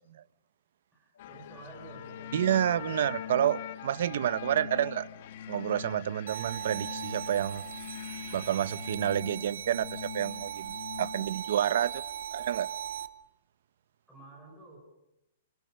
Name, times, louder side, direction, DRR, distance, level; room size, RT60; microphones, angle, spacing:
voice 1, 0.9-2.4 14.1-14.8, right 2 dB, ahead, -5 dB, 6.8 m, -50 dB
Organ, 1.2-11.5, left 9 dB, 70° left, 1.5 m, -44 dB
sound 1, 1.2-9.0, left 10 dB, 40° left, 1.6 m, -46 dB
voice 2, 2.3-5.1 5.5-7.6 8.3-12.0 12.3-12.7, right 10 dB, 55° right, 17 dB, 1.0 m, -29 dB
sound 2, 6.3-13.1, right 9 dB, 70° right, 2.2 m, -39 dB
30.0 x 27.5 x 6.7 m, 0.89 s
hypercardioid pair, 175°, 0 cm